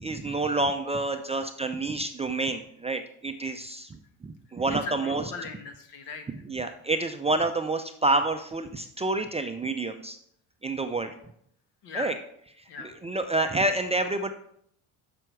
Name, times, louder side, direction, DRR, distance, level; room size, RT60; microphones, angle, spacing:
voice 1, 0.0-5.2 6.5-10.2 10.6-11.1 11.9-12.1 12.8-14.3, right 2 dB, 15° right, 6 dB, 0.4 m, -28 dB
voice 2, 4.8-6.3 11.8-12.1 12.7-12.9, left 4 dB, 65° left, 6 dB, 1.5 m, -38 dB
6.8 x 6.0 x 4.6 m, 0.69 s
supercardioid pair, 95°, 44 cm